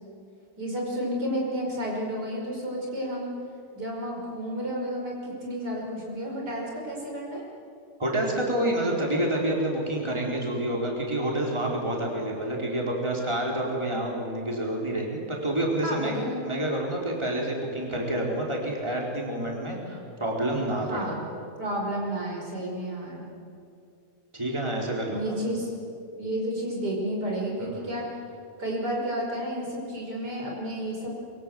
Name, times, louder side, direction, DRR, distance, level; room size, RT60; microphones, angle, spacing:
voice 1, 0.6-3.3 3.7-7.4 15.8-16.5 20.9-21.2 21.6-23.3 25.1-25.7 26.2-28.1 28.6-31.1, equal, 80° right, -2 dB, 6.0 m, -31 dB
voice 2, 8.0-16.1 16.4-21.1 24.3-25.3 27.6-27.9, right 1 dB, 15° right, -2 dB, 4.2 m, -28 dB
26.0 x 23.5 x 7.8 m, 2.5 s
omnidirectional pair, 1.8 m